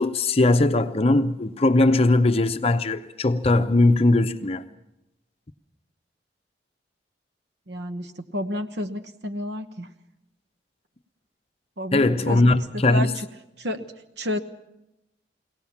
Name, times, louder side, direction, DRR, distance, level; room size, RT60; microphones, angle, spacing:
voice 1, 0.0-4.6 11.9-13.1, left 2 dB, 35° left, 0.7 m, -20 dB
voice 2, 7.7-9.9 11.8-13.3 13.6-13.9 14.2-14.4, left 1 dB, 65° right, 1.1 m, -31 dB
22.5 x 17.5 x 7.2 m
head